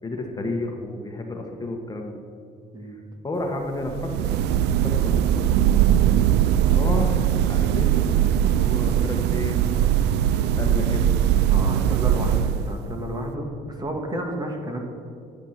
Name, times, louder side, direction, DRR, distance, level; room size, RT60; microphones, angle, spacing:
voice 1, 0.0-2.2 2.8-5.4 6.6-9.7 10.6-11.0, left 2 dB, 25° left, 2 dB, 1.5 m, -32 dB
sound 1, 3.8-13.0, right 10 dB, 85° right, 0.6 m, -20 dB
voice 2, 11.5-14.8, right 1 dB, 25° right, 3 dB, 1.9 m, -31 dB
12.5 x 9.2 x 5.9 m, 2.5 s
cardioid pair, 110°, 17 cm